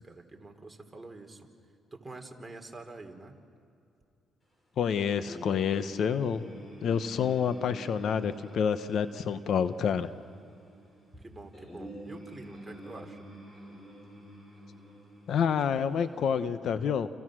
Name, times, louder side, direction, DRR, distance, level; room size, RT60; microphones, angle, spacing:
voice 1, 0.0-1.5 1.9-3.4 11.1-13.2, right 2 dB, 15° right, 3 dB, 3.2 m, -46 dB
voice 2, 4.8-6.5 6.8-10.1 15.3-17.1, left 7 dB, 65° left, 11 dB, 1.0 m, -28 dB
sound 1, 5.2-16.4, equal, 25° left, 7.6 m, -48 dB
29.5 x 29.0 x 6.3 m, 2.5 s
cardioid pair, 90°, 0 cm